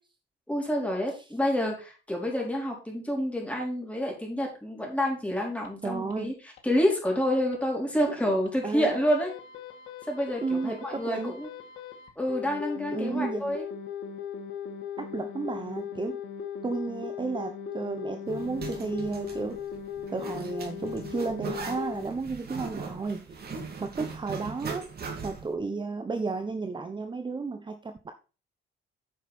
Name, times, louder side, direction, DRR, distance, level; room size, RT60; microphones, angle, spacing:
voice 1, 0.5-6.3 6.6-9.3 10.1-11.5 12.2-13.7, equal, 5° left, -1 dB, 4.5 m, -28 dB
sound 1, 5.6-5.7 6.1-6.2 6.6-6.7 7.1-7.2 7.5-7.6 8.0-8.1 8.5-8.6 8.9-22.0, left 7 dB, 85° left, 2.0 m, -38 dB
voice 2, 5.8-6.3 8.2-8.4 8.6-8.9 10.4-11.4 12.9-13.5 15.0-16.2 16.6-19.6 20.1-23.4 23.8-24.9 25.2-28.1, right 4 dB, 25° right, 7 dB, 0.9 m, -33 dB
Zipper (clothing), 18.3-25.5, right 4 dB, 50° right, 2.8 m, -39 dB
9.4 x 6.5 x 4.4 m, 0.34 s
cardioid pair, 90°, 20 cm